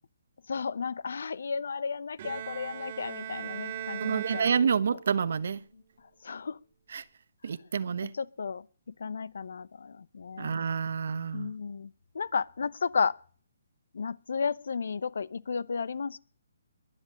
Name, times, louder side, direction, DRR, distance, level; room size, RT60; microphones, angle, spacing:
voice 1, 0.5-4.6 4.9-5.0 5.7-5.8 6.2-6.6 8.0-8.7 9.0-10.5 11.3-13.2 13.9-16.2, left 5 dB, 70° left, 0.8 m, -33 dB
Bowed string instrument, 2.2-5.3, right 10 dB, 35° right, 1.9 m, -39 dB
voice 2, 4.0-5.6 6.9-7.0 7.4-8.1 10.4-11.5, right 6 dB, 60° right, 1.1 m, -28 dB
22.0 x 7.6 x 7.5 m
hypercardioid pair, 165°, 0 cm